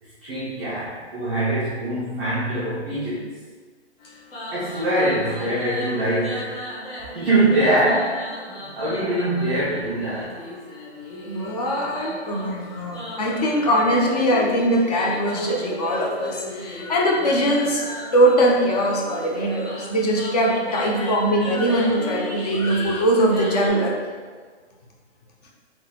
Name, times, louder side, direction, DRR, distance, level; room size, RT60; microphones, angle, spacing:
voice 1, 0.0-3.3 4.5-6.6 7.0-8.2 8.8-10.3, right 1 dB, 10° right, -15 dB, 0.4 m, -23 dB
sound 1, 4.0-23.7, left 1 dB, 55° left, 1.2 m, -37 dB
voice 2, 11.3-24.0, right 1 dB, 35° left, -2 dB, 0.6 m, -21 dB
3.6 x 2.9 x 2.8 m, 1.5 s
hypercardioid pair, 150°, 34 cm